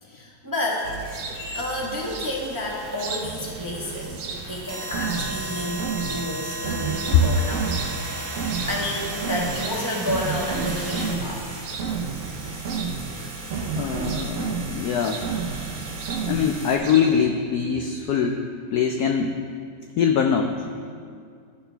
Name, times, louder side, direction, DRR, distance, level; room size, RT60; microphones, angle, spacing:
voice 1, 0.0-1.2 1.5-4.2 4.4-7.8 8.7-11.4, left 1 dB, 20° right, -3 dB, 0.6 m, -30 dB
sound 1, 0.6-16.8, right 2 dB, 55° right, 1.8 m, -36 dB
sound 2, 0.8-17.3, right 4 dB, 90° right, 1.7 m, -39 dB
voice 2, 1.3-1.6 7.1-7.2 13.7-15.2 16.3-18.4 18.7-19.3 20.0-20.6, left 7 dB, 80° left, 4 dB, 0.8 m, -22 dB
sound 3, 3.2-16.7, right 5 dB, 70° right, 0.8 m, -31 dB
12.5 x 6.5 x 3.4 m, 2.2 s
omnidirectional pair, 2.1 m